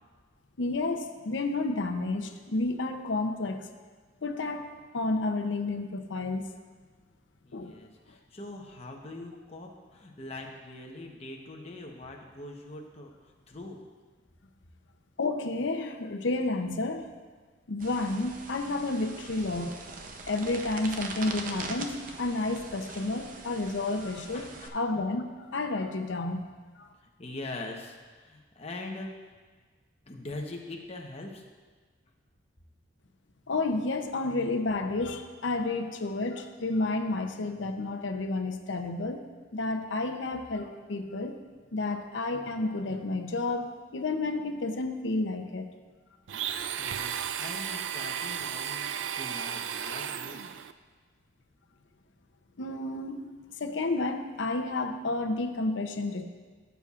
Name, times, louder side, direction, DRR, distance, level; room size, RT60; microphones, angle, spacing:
voice 1, 0.6-3.7 4.2-6.5 7.5-7.8 15.2-17.1 17.7-19.8 20.3-26.5 26.8-26.9 33.5-41.3 41.7-45.7 52.6-53.3 53.6-56.2, left 2 dB, 85° left, 6 dB, 0.7 m, -31 dB
voice 2, 7.4-13.8 24.3-24.8 27.0-29.4 30.0-31.4 46.8-50.5, left 2 dB, 35° left, 0 dB, 1.0 m, -42 dB
sound 1, 17.8-24.7, right 3 dB, 45° right, 0.6 m, -42 dB
Domestic sounds home sounds, 46.3-50.7, right 9 dB, 85° right, 0.4 m, -34 dB
14.5 x 7.1 x 2.5 m, 1.5 s
head